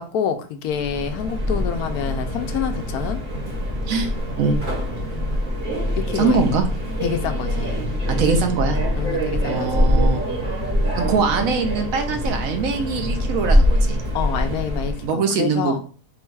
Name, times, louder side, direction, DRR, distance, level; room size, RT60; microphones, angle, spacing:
voice 1, 0.0-3.2 5.1-5.4 6.0-6.4 7.0-7.8 9.0-9.9 14.1-15.8, left 7 dB, 75° left, 7 dB, 1.0 m, -27 dB
Subway metro underground, 0.7-15.1, equal, 35° right, 1.3 m, -23 dB
voice 2, 3.9-4.6 6.1-6.7 8.1-8.8 9.4-10.2 11.0-14.0 15.0-15.8, right 4 dB, 70° right, 6 dB, 0.9 m, -22 dB
3.9 x 2.2 x 4.5 m, 0.40 s
omnidirectional pair, 1.7 m